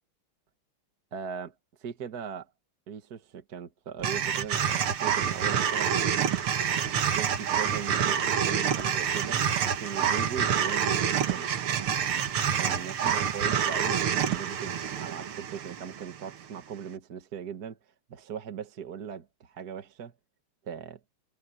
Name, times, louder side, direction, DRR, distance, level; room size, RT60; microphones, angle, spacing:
voice 1, 1.1-1.5 1.8-2.5 2.9-6.0 6.9-11.5 12.6-17.8 18.1-20.1 20.6-21.0, right 7 dB, 50° right, 1.8 m, -39 dB
sound 1, 4.0-16.3, right 8 dB, 85° right, 2.3 m, -27 dB
omnidirectional pair, 2.3 m